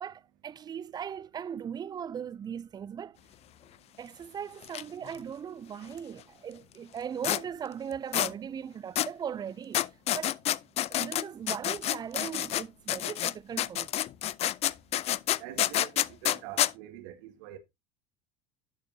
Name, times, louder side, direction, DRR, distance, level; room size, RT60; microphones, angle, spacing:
voice 1, 0.0-3.2 4.0-9.9 10.1-10.4 10.9-13.9, right 8 dB, 25° right, 0.4 m, -38 dB
sound 1, 4.6-4.8 5.1-5.2 7.2-7.4 8.1-8.3 9.0-9.1 9.7-12.6 12.9-16.7, left 13 dB, 40° left, 0.4 m, -28 dB
voice 2, 15.3-17.6, right 13 dB, 65° right, 1.6 m, -44 dB
11.0 x 6.7 x 2.7 m
hypercardioid pair, 80°, 17 cm